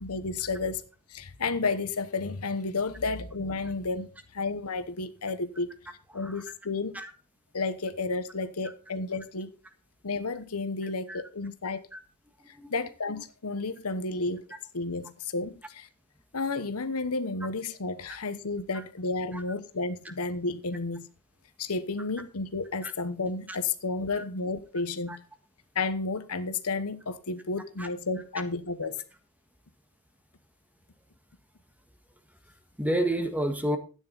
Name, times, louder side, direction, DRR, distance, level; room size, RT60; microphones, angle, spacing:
voice 1, 0.0-0.8 1.1-5.7 6.1-7.0 7.5-9.5 10.0-11.8 12.5-14.4 14.7-15.9 16.3-21.1 21.6-25.2 25.7-29.0, left 3 dB, 75° left, 1.1 m, -32 dB
voice 2, 10.8-11.2 11.9-12.0 12.5-12.7 18.1-18.2 18.7-18.8 19.3-19.4 22.8-22.9 23.5-23.6 24.1-24.2 25.1-25.2 27.8-27.9 32.8-33.8, right 1 dB, 5° right, 1.5 m, -31 dB
12.5 x 9.7 x 4.0 m
head